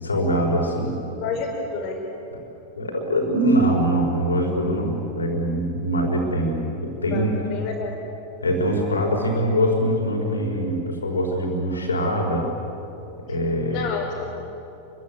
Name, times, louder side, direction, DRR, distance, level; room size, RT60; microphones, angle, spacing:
voice 1, 0.0-1.0 2.7-7.4 8.4-12.5 13.3-13.8, equal, 75° left, 1 dB, 5.1 m, -23 dB
voice 2, 1.2-2.0 7.1-8.0 13.3-13.4 13.7-14.3, left 4 dB, 35° left, -4 dB, 5.4 m, -30 dB
29.0 x 23.5 x 8.2 m, 2.9 s
figure-of-eight pair, 90°, 0 cm